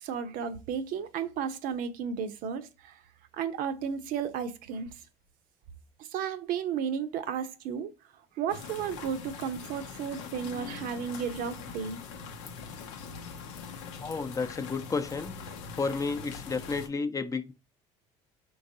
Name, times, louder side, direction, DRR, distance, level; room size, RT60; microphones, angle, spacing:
voice 1, 0.0-2.9 3.4-4.9 6.1-7.9 8.4-12.0, right 7 dB, 65° right, 0.7 m, -33 dB
sound 1, 8.5-16.9, left 5 dB, 85° left, 0.6 m, -42 dB
voice 2, 14.0-15.4 15.8-17.5, left 4 dB, 20° left, 0.6 m, -31 dB
4.7 x 3.2 x 2.7 m
supercardioid pair, 80°, 15 cm